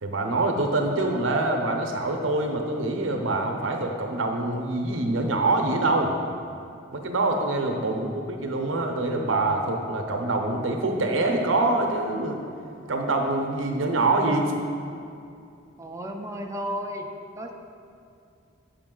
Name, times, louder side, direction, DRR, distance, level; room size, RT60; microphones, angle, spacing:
voice 1, 0.0-6.1 6.9-12.4 12.9-14.5, right 2 dB, 75° right, 3 dB, 0.7 m, -25 dB
voice 2, 7.9-8.2 15.8-17.1 17.4-17.5, equal, 15° right, 2 dB, 0.4 m, -34 dB
7.0 x 5.0 x 3.8 m, 2.5 s
head